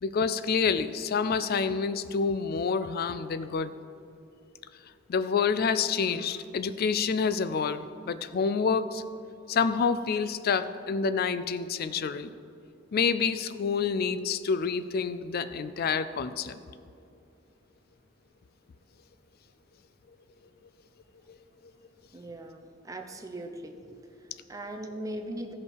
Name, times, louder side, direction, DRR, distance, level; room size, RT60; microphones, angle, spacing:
voice 1, 0.0-3.8 5.1-9.0 9.5-12.3 12.9-16.6 21.3-21.4, left 5 dB, 50° left, 13 dB, 0.4 m, -28 dB
voice 2, 22.1-23.8 24.2-25.5, right 1 dB, 15° right, 4 dB, 0.7 m, -39 dB
14.5 x 5.3 x 4.7 m, 2.5 s
head